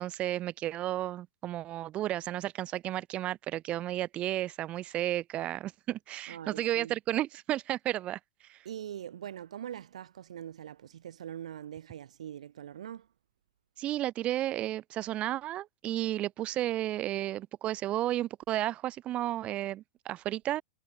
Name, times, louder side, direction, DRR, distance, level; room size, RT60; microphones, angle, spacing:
voice 1, 0.0-8.2 8.5-8.6 13.8-20.6, right 14 dB, 30° right, 3.8 m, -33 dB
voice 2, 6.3-6.9 8.7-13.1, right 10 dB, 60° right, 3.5 m, -42 dB
figure-of-eight pair, 100°, 4 cm